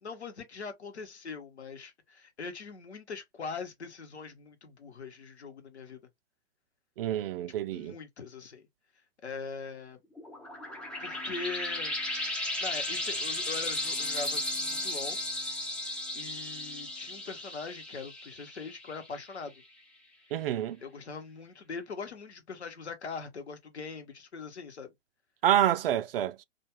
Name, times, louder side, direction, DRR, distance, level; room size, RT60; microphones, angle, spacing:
voice 1, 0.0-6.0 7.7-8.6 9.2-10.0 11.0-12.0 12.3-15.2 16.1-19.5 20.8-24.9, left 4 dB, 80° left, 1.0 m, -41 dB
voice 2, 7.0-7.9 20.3-20.8 25.4-26.4, right 11 dB, 60° right, 0.4 m, -27 dB
sound 1, 10.2-19.3, left 1 dB, 5° left, 0.3 m, -35 dB
2.4 x 2.3 x 2.9 m
figure-of-eight pair, 105°, 33 cm